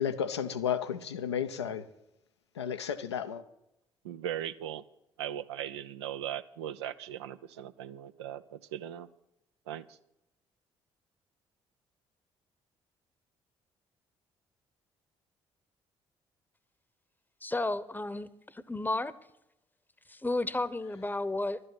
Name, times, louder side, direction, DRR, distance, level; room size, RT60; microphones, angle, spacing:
voice 1, 0.0-1.9 2.6-3.4, left 8 dB, 85° left, 0.6 m, -32 dB
voice 2, 4.0-4.8 5.2-9.1 9.7-10.0, right 11 dB, 80° right, 0.5 m, -39 dB
voice 3, 17.4-19.1 20.1-21.6, left 2 dB, 15° left, 0.8 m, -32 dB
12.0 x 9.7 x 5.9 m
figure-of-eight pair, 45°, 14 cm